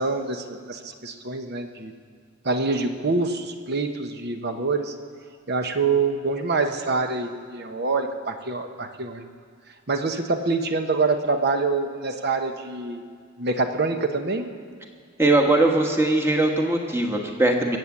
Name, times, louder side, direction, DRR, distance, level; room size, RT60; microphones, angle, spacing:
voice 1, 0.0-1.9 2.4-4.9 5.5-9.2 9.9-13.0 13.4-14.5, right 3 dB, 50° right, 6 dB, 1.0 m, -25 dB
voice 2, 15.2-17.8, right 2 dB, 10° right, 2 dB, 1.4 m, -20 dB
23.0 x 8.3 x 7.3 m, 2.1 s
head